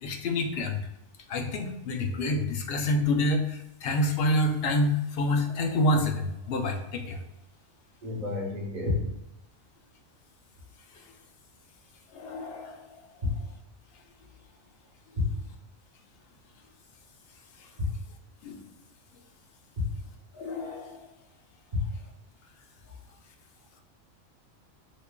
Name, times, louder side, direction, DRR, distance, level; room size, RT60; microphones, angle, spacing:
voice 1, 0.0-0.8 1.3-7.2 12.1-13.0 18.4-18.6 20.3-21.1, left 1 dB, 60° left, 3 dB, 0.7 m, -28 dB
voice 2, 8.0-9.1 13.2-13.3 15.2-15.3 17.8-17.9 19.8-19.9 21.7-21.9 22.8-23.0, left 3 dB, 40° right, -3 dB, 1.1 m, -29 dB
5.1 x 2.3 x 2.2 m, 0.86 s
omnidirectional pair, 1.3 m